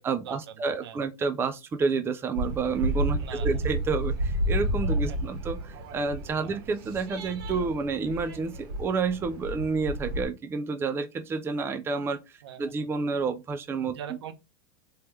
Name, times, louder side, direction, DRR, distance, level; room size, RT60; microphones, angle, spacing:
voice 1, 0.0-14.0, right 4 dB, 20° right, 0.5 m, -29 dB
voice 2, 0.7-1.0 3.2-3.6 5.1-5.3 6.4-6.6 12.4-12.8 13.9-14.3, right 9 dB, 85° right, 0.9 m, -42 dB
sound 1, 2.3-10.2, equal, 65° right, 1.5 m, -31 dB
3.3 x 3.0 x 3.2 m
supercardioid pair, 130°, 13 cm